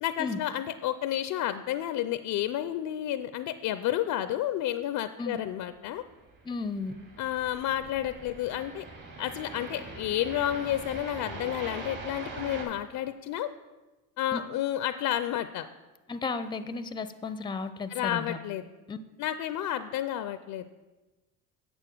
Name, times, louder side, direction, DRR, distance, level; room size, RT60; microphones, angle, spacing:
voice 1, 0.0-6.0 7.2-8.8 9.2-13.5 14.2-15.7 17.9-18.6 19.2-20.6, left 12 dB, 55° left, 12 dB, 0.5 m, -31 dB
sound 1, 6.0-12.6, right 3 dB, 55° right, 2.8 m, -42 dB
voice 2, 6.4-6.9 14.3-14.4 16.1-18.4 18.9-19.0, left 4 dB, 10° left, 12 dB, 0.5 m, -34 dB
7.6 x 7.0 x 6.1 m, 1.2 s
supercardioid pair, 85°, 40 cm